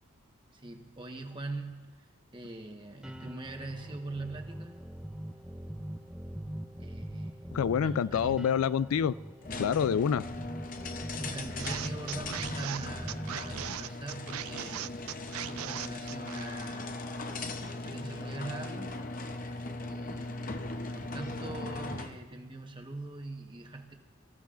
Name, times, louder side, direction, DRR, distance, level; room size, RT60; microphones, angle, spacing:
voice 1, 0.5-4.8 6.8-7.5 7.8-8.5 11.2-14.9 15.5-17.0 17.6-19.0 19.9-23.9, right 2 dB, 20° right, 3 dB, 1.2 m, -42 dB
sound 1, 3.0-13.7, equal, 5° right, 0.5 m, -42 dB
voice 2, 7.5-9.2 9.6-10.2, left 7 dB, 80° left, 18 dB, 0.3 m, -27 dB
sound 2, 9.4-22.2, left 2 dB, 40° left, 0.7 m, -39 dB
sound 3, 11.6-16.8, right 12 dB, 80° right, 0.4 m, -39 dB
25.0 x 15.0 x 2.5 m, 1.5 s
head